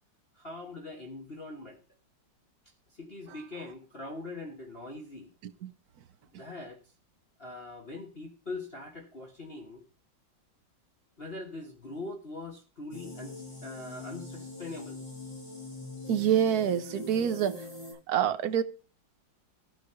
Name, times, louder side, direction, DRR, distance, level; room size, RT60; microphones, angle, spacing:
voice 1, 0.3-1.8 2.9-5.3 6.4-6.8 7.4-9.8 11.2-15.0 17.2-17.3, left 2 dB, 35° left, 1.4 m, -42 dB
sound 1, 12.9-17.9, left 2 dB, 90° left, 8.0 m, -42 dB
voice 2, 16.1-17.7 18.1-18.6, right 9 dB, 65° right, 1.2 m, -27 dB
14.5 x 5.1 x 6.7 m
omnidirectional pair, 2.0 m